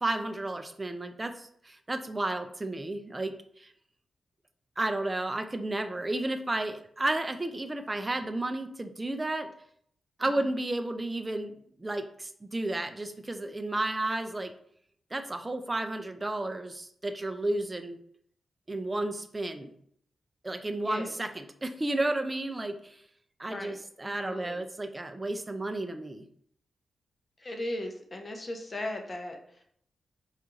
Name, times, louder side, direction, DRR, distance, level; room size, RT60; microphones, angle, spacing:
voice 1, 0.0-3.7 4.8-9.5 10.2-11.5 11.8-14.5 15.1-18.0 18.7-19.7 20.4-23.0 23.4-26.3, right 2 dB, 20° right, 7 dB, 0.3 m, -32 dB
voice 2, 24.0-24.6 27.4-29.6, left 1 dB, 25° left, 3 dB, 0.7 m, -37 dB
4.3 x 2.4 x 3.8 m, 0.66 s
wide cardioid pair, 125°, 0 cm